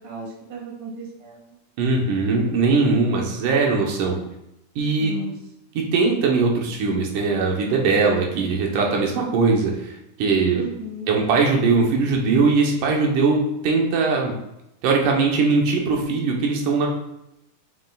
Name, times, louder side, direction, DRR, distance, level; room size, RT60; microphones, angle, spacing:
voice 1, 0.0-1.5 5.0-5.3 10.5-11.1, right 1 dB, 35° right, -3 dB, 2.0 m, -35 dB
voice 2, 1.8-4.2 4.8-5.1 5.7-9.9 10.2-10.6 11.1-14.3 14.8-16.9, right 4 dB, 90° right, 0 dB, 2.6 m, -20 dB
7.4 x 6.4 x 2.3 m, 0.84 s
omnidirectional pair, 3.6 m